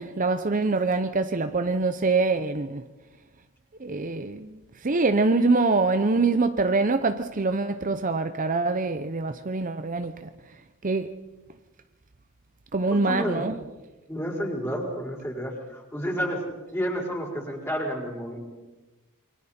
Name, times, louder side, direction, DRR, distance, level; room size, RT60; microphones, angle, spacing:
voice 1, 0.0-2.8 3.8-10.3 10.8-11.1 12.7-13.5, right 3 dB, 35° right, 0.7 m, -24 dB
voice 2, 12.9-13.4 14.1-16.4 16.7-18.4, equal, 10° left, 5.0 m, -30 dB
28.0 x 24.0 x 4.4 m
head